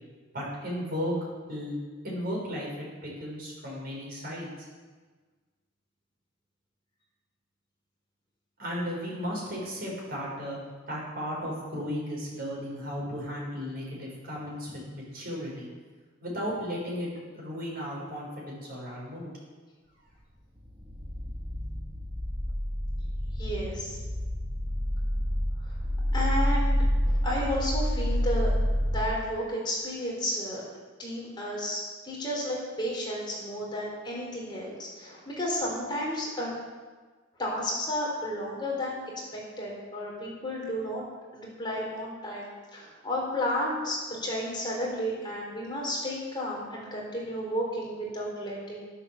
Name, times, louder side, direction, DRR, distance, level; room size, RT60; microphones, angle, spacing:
voice 1, 0.3-1.1 1.5-1.8 2.0-4.5 8.6-10.6 10.9-15.7 16.2-19.3, equal, 50° right, -4 dB, 6.0 m, -35 dB
sound 1, 20.7-29.0, equal, 25° right, 2.0 m, -28 dB
voice 2, 23.4-24.0 25.7-25.8 26.1-28.5 28.9-30.6 31.0-36.5 37.4-39.0 39.3-41.0 41.3-48.8, equal, 25° left, -3 dB, 3.9 m, -32 dB
12.5 x 11.5 x 7.3 m, 1.4 s
head